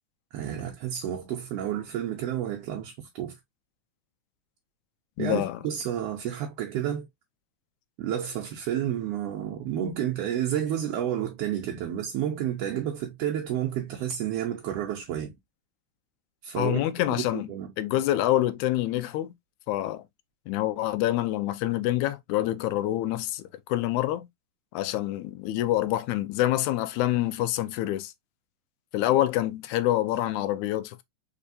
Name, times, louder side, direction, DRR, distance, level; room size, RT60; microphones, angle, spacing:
voice 1, 0.3-3.3 5.2-7.1 8.0-15.3 16.4-16.8 17.3-17.7, right 10 dB, 70° right, 1.6 m, -30 dB
voice 2, 5.2-5.6 16.6-17.5 17.8-19.3 19.7-20.0 20.5-24.3 24.7-28.1 28.9-31.0, left 14 dB, 90° left, 2.0 m, -26 dB
4.6 x 3.4 x 2.6 m
omnidirectional pair, 3.4 m